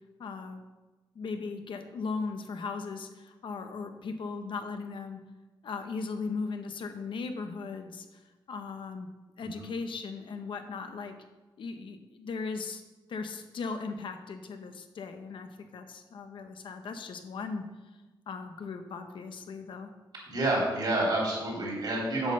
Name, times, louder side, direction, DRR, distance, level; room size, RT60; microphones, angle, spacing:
voice 1, 0.2-0.6 1.1-5.2 5.6-8.1 8.5-9.1 9.4-11.1 11.6-12.8 13.1-17.6 18.3-19.9, left 4 dB, 70° left, 7 dB, 0.8 m, -37 dB
voice 2, 20.3-22.3, right 1 dB, 55° right, -4 dB, 3.5 m, -29 dB
8.2 x 5.4 x 6.5 m, 1.1 s
wide cardioid pair, 180°, 9 cm